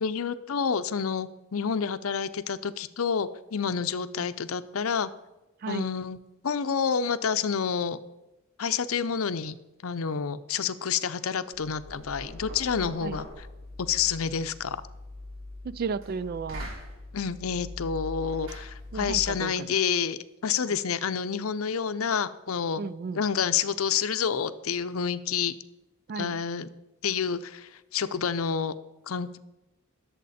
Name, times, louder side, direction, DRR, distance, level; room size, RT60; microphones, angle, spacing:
voice 1, 0.0-5.1 5.7-6.2 6.4-8.0 8.6-9.5 9.8-13.5 13.8-14.8 17.1-22.8 23.1-25.5 26.1-26.7 27.0-28.7 29.1-29.4, left 6 dB, 80° left, 0.6 m, -29 dB
Knock, 11.5-19.4, left 1 dB, 70° right, 3.3 m, -41 dB
voice 2, 15.6-16.7 18.9-19.7 22.8-23.2 26.1-26.4, right 5 dB, 45° right, 0.3 m, -33 dB
19.5 x 7.3 x 4.2 m
head